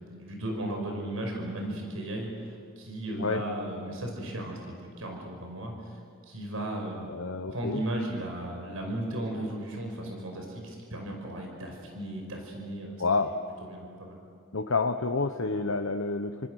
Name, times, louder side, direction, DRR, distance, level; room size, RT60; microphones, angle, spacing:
voice 1, 0.0-6.0 6.3-7.1 7.5-13.3 13.6-14.2, right 1 dB, 75° right, 1 dB, 5.3 m, -36 dB
voice 2, 7.1-7.8 13.0-13.3 14.5-16.5, left 3 dB, 70° left, 5 dB, 1.0 m, -29 dB
29.5 x 27.0 x 6.5 m, 2.3 s
head